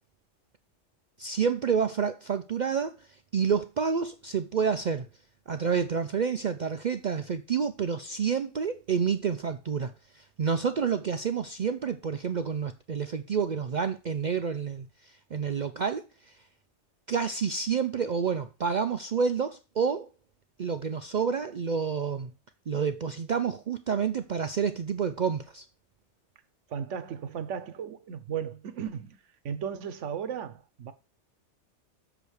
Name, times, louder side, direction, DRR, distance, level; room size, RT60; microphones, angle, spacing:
voice 1, 1.2-2.9 3.3-5.1 5.5-9.9 10.4-14.9 15.3-16.0 17.1-20.1 20.6-22.3 22.7-25.6, right 6 dB, 50° right, 0.6 m, -28 dB
voice 2, 26.7-30.9, right 8 dB, 90° right, 1.2 m, -36 dB
6.9 x 5.1 x 6.3 m
omnidirectional pair, 1.2 m